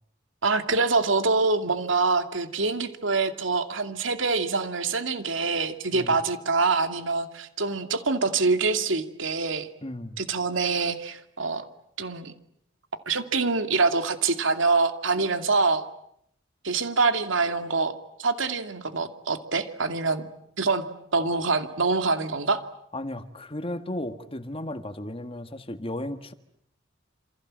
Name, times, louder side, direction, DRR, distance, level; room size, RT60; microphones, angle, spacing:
voice 1, 0.4-9.7 10.2-11.6 12.0-12.3 13.1-15.8 16.6-17.9 18.2-20.3 20.6-20.8 21.1-22.6, right 3 dB, 75° right, 8 dB, 2.5 m, -25 dB
voice 2, 9.8-10.2 22.9-26.3, left 1 dB, 30° left, 10 dB, 1.8 m, -34 dB
28.5 x 27.5 x 7.6 m, 0.73 s
head